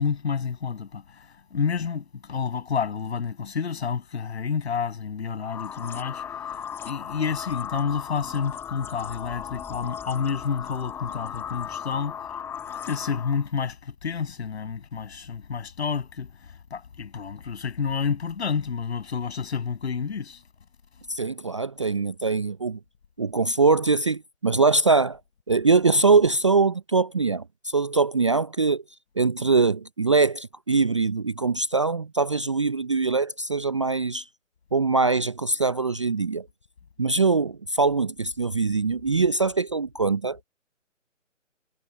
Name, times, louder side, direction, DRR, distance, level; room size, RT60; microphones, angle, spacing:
voice 1, 0.0-12.2 12.7-20.4, left 6 dB, 55° left, 7.5 m, -29 dB
sound 1, 5.4-13.5, left 8 dB, 5° left, 1.4 m, -36 dB
voice 2, 21.1-22.8 23.2-25.2 25.5-28.8 29.2-34.3 34.7-36.5 37.0-40.4, right 4 dB, 25° right, 0.5 m, -22 dB
figure-of-eight pair, 145°, 38 cm